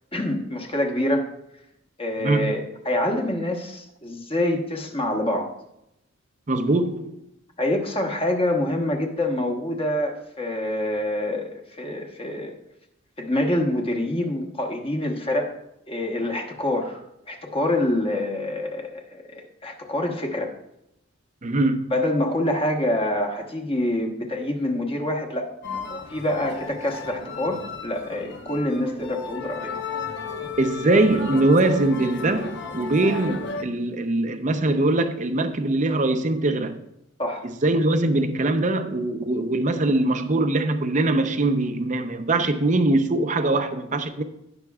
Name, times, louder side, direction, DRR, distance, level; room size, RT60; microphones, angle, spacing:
voice 1, 0.1-1.3 2.0-5.5 7.6-12.5 13.2-15.5 15.9-17.0 17.3-20.5 21.9-25.5 26.1-29.8 37.2-37.4, left 1 dB, 30° left, 1.2 m, -26 dB
voice 2, 2.2-2.5 6.5-7.2 21.4-21.9 30.6-36.8 37.4-44.2, right 2 dB, 40° right, 0.7 m, -22 dB
sound 1, 25.6-33.6, left 4 dB, 60° left, 1.0 m, -34 dB
17.5 x 6.0 x 2.4 m
head